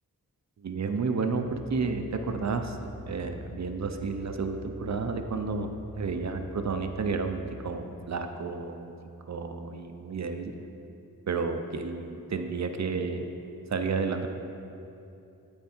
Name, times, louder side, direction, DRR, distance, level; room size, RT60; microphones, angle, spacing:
voice 1, 0.6-5.7 6.0-8.9 9.3-10.5 11.3-13.3 13.7-14.3, right 4 dB, 50° right, 6 dB, 0.6 m, -31 dB
sound 1, 1.4-7.6, left 1 dB, 20° left, 1.8 m, -45 dB
12.0 x 4.5 x 4.4 m, 2.8 s
wide cardioid pair, 80°, 35 cm